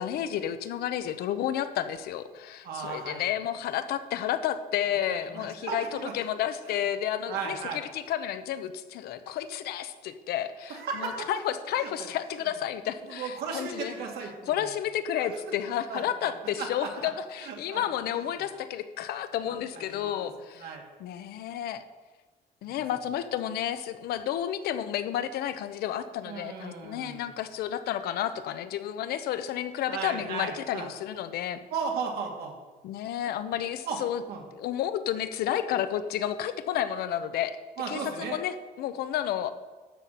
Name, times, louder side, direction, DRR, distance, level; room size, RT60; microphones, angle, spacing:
voice 1, 0.0-14.0 14.5-20.7 21.0-21.8 22.6-31.6 32.8-34.2 34.5-37.6 37.9-39.5, left 10 dB, 75° left, 11 dB, 0.8 m, -31 dB
voice 2, 2.6-3.2 4.8-6.1 6.7-6.8 7.3-7.8 10.7-11.3 11.8-12.1 12.4-12.5 13.0-14.6 15.2-15.4 15.9-17.1 17.4-18.2 19.5-20.3 20.6-20.8 22.6-22.8 26.3-27.3 29.9-30.9 31.7-32.6 33.9-34.0 34.3-34.4 37.8-38.4, right 5 dB, 75° right, 1 dB, 2.2 m, -36 dB
12.5 x 4.2 x 7.5 m, 1.3 s
cardioid pair, 125°, 16 cm